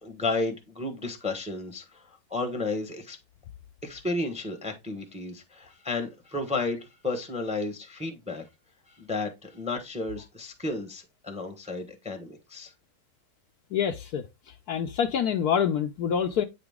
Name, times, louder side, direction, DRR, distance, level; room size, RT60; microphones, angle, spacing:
voice 1, 0.0-3.2 3.8-8.5 8.9-12.7, left 2 dB, 5° right, 0.8 m, -33 dB
voice 2, 13.7-14.2 14.7-16.4, left 8 dB, 70° left, 1.0 m, -26 dB
8.8 x 4.0 x 3.5 m
omnidirectional pair, 2.0 m